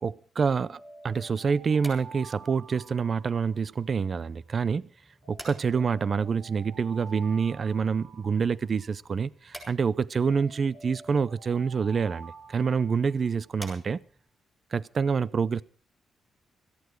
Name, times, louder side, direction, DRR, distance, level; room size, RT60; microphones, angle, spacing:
voice 1, 0.0-4.9 5.3-14.0 14.7-15.6, right 5 dB, 40° right, 0.6 m, -27 dB
Alarm, 0.7-4.1 5.2-9.1 10.2-13.5, right 4 dB, 80° right, 7.9 m, -49 dB
sound 1, 1.4-14.3, right 1 dB, 10° right, 6.6 m, -52 dB
17.5 x 14.5 x 4.7 m
cardioid pair, 120°, 0 cm